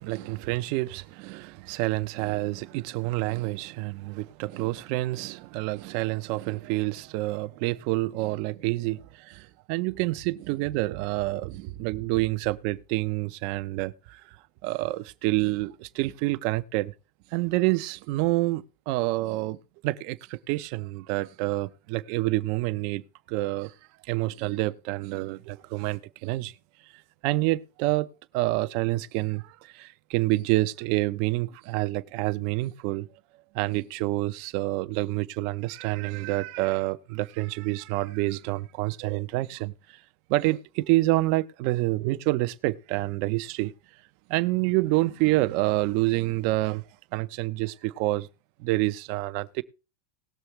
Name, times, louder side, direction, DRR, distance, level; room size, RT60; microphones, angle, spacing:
voice 1, 0.0-14.2 14.6-16.9 17.3-23.7 24.1-26.5 27.2-28.1 28.3-33.1 33.5-40.0 40.3-43.7 44.3-46.8 47.1-48.3 48.6-49.6, right 19 dB, 45° right, 0.7 m, -28 dB
19.0 x 7.0 x 3.3 m
supercardioid pair, 165°, 0 cm